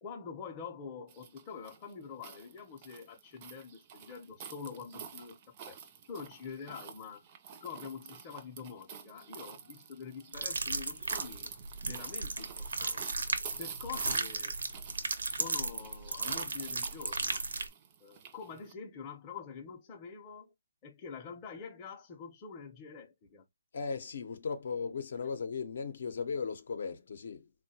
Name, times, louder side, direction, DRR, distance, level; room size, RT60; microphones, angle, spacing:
voice 1, 0.0-5.4 5.7-5.8 6.1-11.5 11.9-13.3 13.6-14.6 15.3-17.4 18.0-20.5 20.8-23.5, left 6 dB, 20° left, 0.7 m, -46 dB
sound 1, 1.1-18.7, right 7 dB, 25° right, 0.5 m, -48 dB
sound 2, 10.3-17.7, right 3 dB, 80° right, 0.7 m, -35 dB
voice 2, 23.7-27.5, left 5 dB, 55° left, 0.7 m, -37 dB
3.6 x 2.2 x 2.7 m
hypercardioid pair, 160°, 0 cm